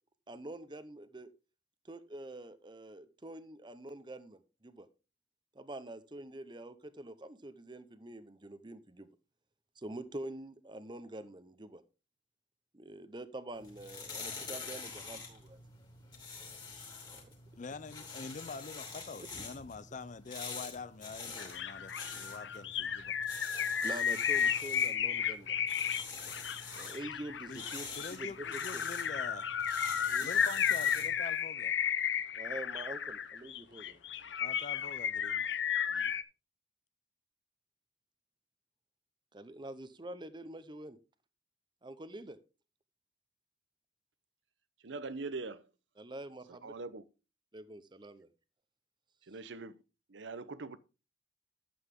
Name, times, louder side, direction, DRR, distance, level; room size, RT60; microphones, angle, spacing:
voice 1, 0.3-1.3 1.8-4.9 5.5-9.1 9.8-11.8 12.7-15.6 17.1-17.3 23.8-25.6 26.7-28.8 30.1-30.3 32.3-34.0 39.3-41.0 41.8-42.4 46.0-46.7 47.5-48.3, right 1 dB, 25° right, 0.8 m, -46 dB
sound 1, 13.6-31.2, left 4 dB, 25° left, 2.9 m, -46 dB
voice 2, 17.6-23.2 27.5-27.6 28.0-29.5 30.2-31.8 34.4-35.5 35.9-36.1, left 4 dB, 40° left, 0.5 m, -46 dB
sound 2, 21.4-36.2, left 8 dB, 75° left, 0.7 m, -33 dB
voice 3, 44.8-45.6 46.5-47.0 49.3-49.8 50.1-50.8, right 3 dB, 80° right, 0.8 m, -42 dB
11.5 x 8.1 x 3.6 m
head